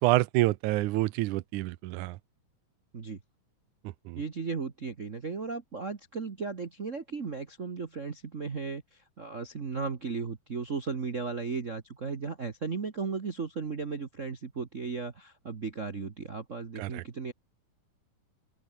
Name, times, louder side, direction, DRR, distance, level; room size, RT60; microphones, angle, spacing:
voice 1, 0.0-2.2 4.1-4.2 16.8-17.0, right 18 dB, 80° right, 2.1 m, -27 dB
voice 2, 4.1-8.8 9.2-17.3, right 4 dB, 50° right, 0.9 m, -35 dB
open air
omnidirectional pair, 3.7 m